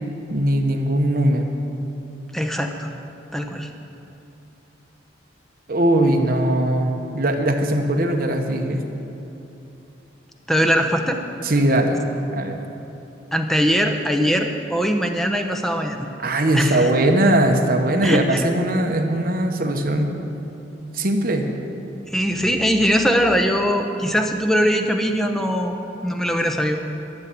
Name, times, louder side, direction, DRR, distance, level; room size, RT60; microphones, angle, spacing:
voice 1, 0.3-1.5 5.7-8.8 11.4-12.6 16.2-20.1 20.9-21.5, right 1 dB, 50° right, 3 dB, 1.1 m, -20 dB
voice 2, 2.3-2.9 3.3-3.7 10.5-11.2 13.3-16.1 16.5-16.9 18.0-18.4 22.1-25.7 26.0-26.8, equal, ahead, 4 dB, 0.8 m, -21 dB
12.5 x 7.5 x 8.2 m, 3.0 s
head